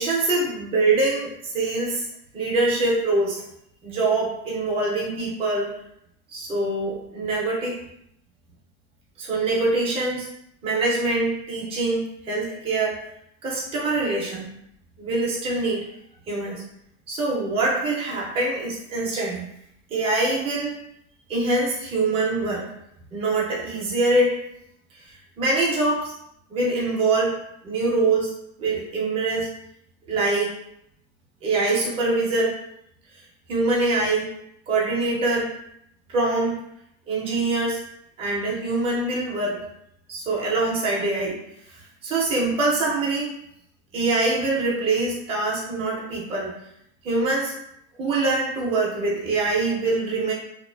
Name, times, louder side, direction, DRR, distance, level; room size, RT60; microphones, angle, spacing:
voice 1, 0.0-2.1 2.3-3.4 3.8-5.7 6.3-7.8 9.2-10.3 10.6-13.0 13.4-14.5 15.0-15.9 16.3-16.6 17.1-19.4 19.9-20.8 21.3-22.6 23.1-24.4 25.1-26.1 26.5-27.3 27.6-28.3 28.6-29.5 30.1-30.6 31.4-32.6 33.5-34.3 34.7-35.5 36.1-36.5 37.1-37.8 38.2-39.6 40.1-41.4 41.7-43.3 43.9-46.5 47.0-47.5 48.0-50.3, right 2 dB, 15° right, -4 dB, 0.4 m, -24 dB
2.4 x 2.3 x 2.2 m, 0.76 s
supercardioid pair, 145°, 39 cm